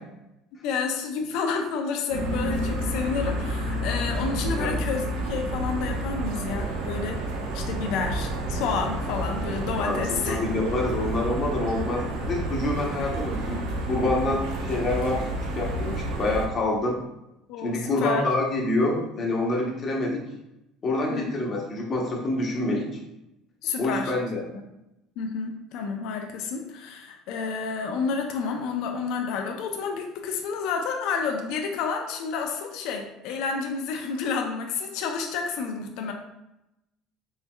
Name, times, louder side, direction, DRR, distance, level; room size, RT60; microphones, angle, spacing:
voice 1, 0.6-7.2 7.5-10.4 17.5-18.3 21.1-21.4 23.6-24.1 25.2-36.1, left 5 dB, 65° left, 3 dB, 0.5 m, -30 dB
sound 1, 2.1-16.4, right 1 dB, 90° right, 0.8 m, -30 dB
voice 2, 10.3-13.6 13.9-15.3 15.5-17.0 17.6-20.2 20.8-22.9 23.8-24.4, left 2 dB, 30° left, -1 dB, 0.9 m, -26 dB
4.5 x 3.1 x 2.3 m, 0.88 s
cardioid pair, 150°, 0 cm